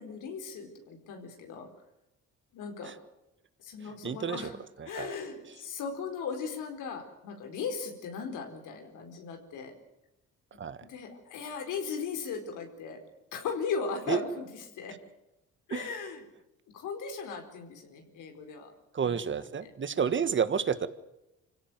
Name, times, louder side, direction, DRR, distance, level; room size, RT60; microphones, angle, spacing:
voice 1, 0.0-1.7 2.5-3.0 3.6-4.5 4.9-9.7 10.8-13.0 13.3-15.0 15.7-16.2 16.7-18.7 19.0-20.1, left 5 dB, 85° left, 4 dB, 4.6 m, -38 dB
voice 2, 4.0-4.5 4.8-5.2 10.6-10.8 14.1-14.2 15.7-15.9 18.9-20.9, right 7 dB, 40° right, 13 dB, 1.6 m, -30 dB
25.5 x 17.0 x 9.4 m, 0.91 s
cardioid pair, 90°, 30 cm